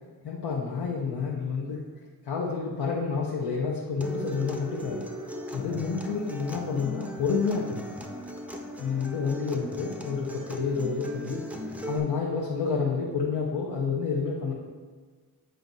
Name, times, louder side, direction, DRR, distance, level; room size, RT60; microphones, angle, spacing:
voice 1, 0.2-1.8 2.2-5.0 5.5-7.8 8.8-11.4 11.8-14.5, left 5 dB, 85° left, -3 dB, 0.8 m, -29 dB
Acoustic guitar, 4.0-12.0, equal, 5° right, 0.4 m, -38 dB
7.8 x 4.6 x 2.6 m, 1.5 s
wide cardioid pair, 115°, 39 cm